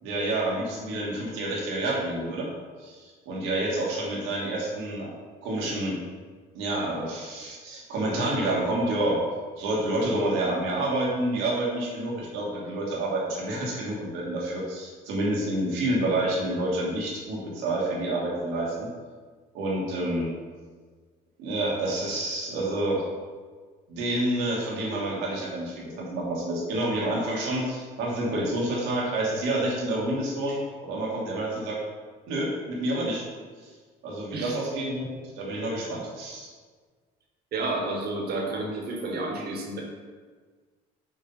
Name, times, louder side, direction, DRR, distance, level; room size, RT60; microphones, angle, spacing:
voice 1, 0.0-2.5 2.8-5.1 5.4-6.0 6.5-9.2 9.6-18.9 19.5-20.3 21.4-23.0 23.9-31.8 32.3-33.2 33.6-33.7 34.0-35.1 35.3-36.5, right 1 dB, 85° right, -4 dB, 1.8 m, -28 dB
voice 2, 37.5-39.8, right 2 dB, 55° right, 0 dB, 1.5 m, -30 dB
6.3 x 2.8 x 5.4 m, 1.5 s
supercardioid pair, 85°, 19 cm